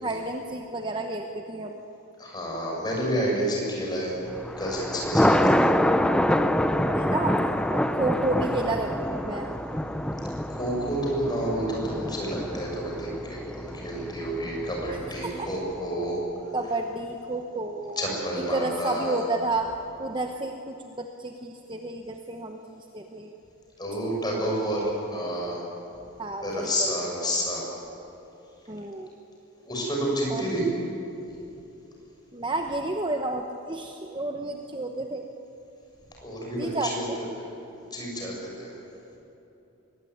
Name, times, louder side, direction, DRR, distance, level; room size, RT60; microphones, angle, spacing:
voice 1, 0.0-1.9 6.9-7.4 7.7-9.5 14.9-15.0 15.2-15.5 16.5-19.7 20.0-23.4 26.2-26.9 28.7-29.1 30.3-30.5 32.3-35.3 36.6-37.2, right 2 dB, 20° right, 3 dB, 1.0 m, -31 dB
voice 2, 2.2-4.1 4.6-5.5 10.5-16.2 18.0-19.2 23.8-25.6 26.4-27.6 29.6-30.7 36.2-37.0 37.4-37.5 37.8-38.7, equal, 20° left, -2 dB, 6.4 m, -29 dB
Thunder, 4.3-15.6, equal, 5° left, 0.6 m, -26 dB
23.0 x 19.0 x 9.5 m, 3.0 s
head